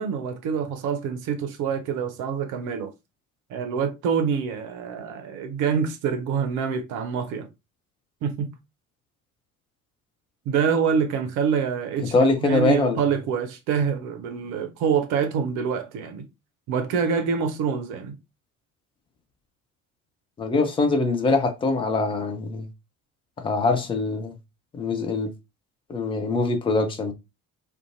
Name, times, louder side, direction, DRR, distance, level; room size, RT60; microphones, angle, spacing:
voice 1, 0.0-2.9 3.5-7.5 8.2-8.5 10.5-16.3 16.7-18.2, right 6 dB, 45° right, 0.6 m, -26 dB
voice 2, 12.1-13.0 20.4-22.7 23.4-24.3 24.7-25.3 25.9-27.1, left 3 dB, 15° left, 0.3 m, -23 dB
2.5 x 2.3 x 2.6 m
figure-of-eight pair, 55°, 42 cm